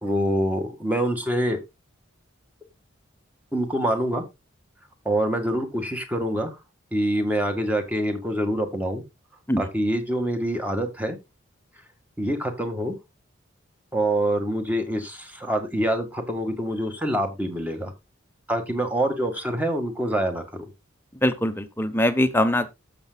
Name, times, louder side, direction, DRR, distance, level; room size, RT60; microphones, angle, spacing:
voice 1, 0.0-1.6 3.5-4.2 5.1-6.5 6.9-9.0 9.6-11.2 12.2-13.0 13.9-17.9 18.5-20.6, right 1 dB, 10° right, 1.8 m, -25 dB
voice 2, 21.1-22.7, left 1 dB, 10° left, 1.0 m, -22 dB
14.0 x 6.9 x 2.3 m
head